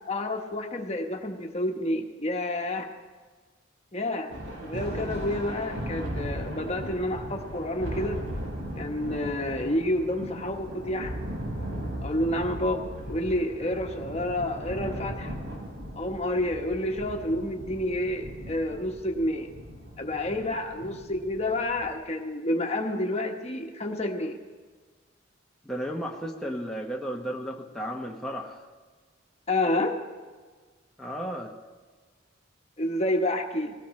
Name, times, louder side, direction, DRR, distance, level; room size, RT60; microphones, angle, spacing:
voice 1, 0.0-2.9 3.9-4.3 4.6-8.2 8.8-11.2 12.0-15.3 16.0-19.5 20.0-24.4 29.5-30.0 32.8-33.7, left 1 dB, 30° left, 3 dB, 1.2 m, -29 dB
Thunder, 4.3-22.0, equal, 75° right, 4.3 m, -37 dB
voice 2, 25.6-28.7 31.0-31.5, equal, 5° left, -2 dB, 1.0 m, -34 dB
20.0 x 18.0 x 3.2 m, 1.4 s
head